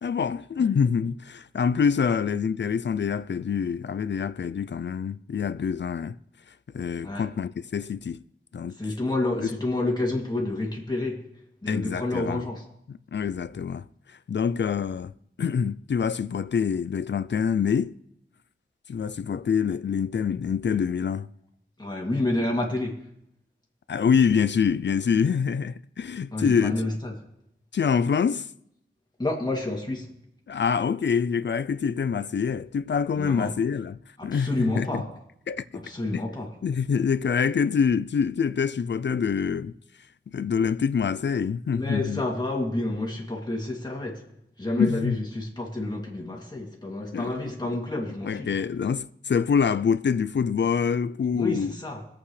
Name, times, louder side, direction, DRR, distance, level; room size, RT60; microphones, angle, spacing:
voice 1, 0.0-6.2 6.7-8.2 8.5-8.7 11.7-12.5 12.9-13.8 14.3-15.1 15.4-17.9 18.9-21.3 23.9-26.9 27.7-28.5 30.5-34.0 34.2-35.0 35.5-35.6 36.1-36.2 36.6-39.7 40.3-42.2 44.8-45.2 47.1-47.3 48.2-51.7, left 6 dB, 60° left, 0.4 m, -25 dB
voice 2, 8.8-11.3 11.6-12.7 21.8-23.1 26.3-27.1 29.2-30.1 33.1-33.6 34.2-35.2 35.7-36.5 41.7-44.2 44.6-48.6 51.3-52.1, left 2 dB, 20° left, 2.6 m, -29 dB
23.5 x 8.4 x 3.3 m
wide cardioid pair, 90°, 21 cm